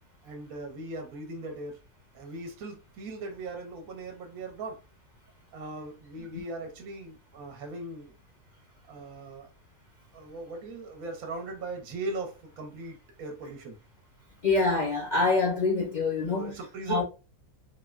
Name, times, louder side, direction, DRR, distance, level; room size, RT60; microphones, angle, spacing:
voice 1, 0.2-1.8 2.1-4.8 5.5-8.1 8.9-9.5 10.1-13.8 16.4-17.0, right 2 dB, 70° right, 1.1 m, -39 dB
voice 2, 14.4-16.6 16.9-17.0, left 3 dB, 50° left, 0.5 m, -25 dB
3.4 x 2.1 x 2.4 m
omnidirectional pair, 1.6 m